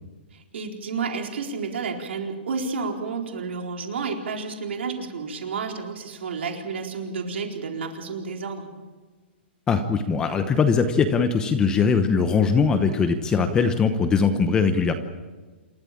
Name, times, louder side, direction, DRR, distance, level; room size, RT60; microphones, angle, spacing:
voice 1, 0.3-8.7, right 4 dB, 80° right, 2 dB, 4.1 m, -31 dB
voice 2, 9.7-14.9, left 5 dB, 10° left, 8 dB, 1.0 m, -21 dB
28.0 x 14.5 x 8.7 m, 1.3 s
hypercardioid pair, 165°, 6 cm